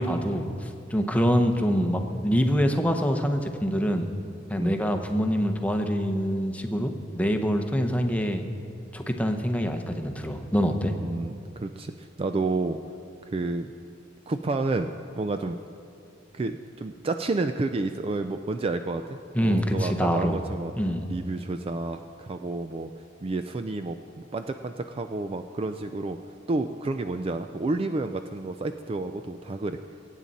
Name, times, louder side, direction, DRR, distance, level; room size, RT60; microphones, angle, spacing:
voice 1, 0.0-4.1 4.5-8.4 8.9-10.9 19.3-20.4 20.7-21.0, equal, 5° left, 5 dB, 0.8 m, -25 dB
voice 2, 11.0-12.8 13.3-13.7 14.3-15.6 16.3-20.7 21.1-22.9 23.2-26.2 26.5-29.8, right 3 dB, 30° right, 8 dB, 0.4 m, -30 dB
22.5 x 9.0 x 4.1 m, 2.4 s
head